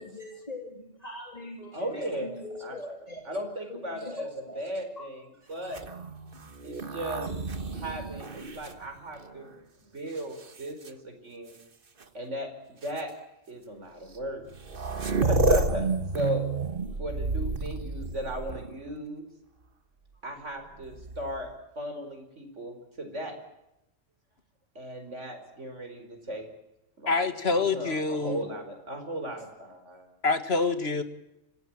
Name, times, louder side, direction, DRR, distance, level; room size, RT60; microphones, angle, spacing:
voice 1, 0.0-3.3 3.7-4.6 5.0-5.1 7.7-7.9, left 1 dB, 30° left, 1 dB, 3.3 m, -41 dB
voice 2, 1.7-2.8 3.3-4.3 4.6-5.2 5.5-5.8 6.6-7.3 7.7-11.5 12.1-13.1 13.5-14.4 14.9-15.9 16.1-16.4 17.0-19.3 20.2-21.5 21.8-23.4 24.8-26.5 27.0-27.3 27.6-30.1, equal, 65° right, 5 dB, 5.2 m, -36 dB
sound 1, 5.6-9.5 10.2-10.9 12.0-12.1 12.8-13.0 14.1-14.2 14.4-18.9 20.8-21.5, right 3 dB, 45° right, 1.5 m, -31 dB
voice 3, 27.1-28.4 30.2-31.0, left 3 dB, 50° left, 9 dB, 2.1 m, -26 dB
25.5 x 18.0 x 9.1 m, 0.87 s
omnidirectional pair, 1.3 m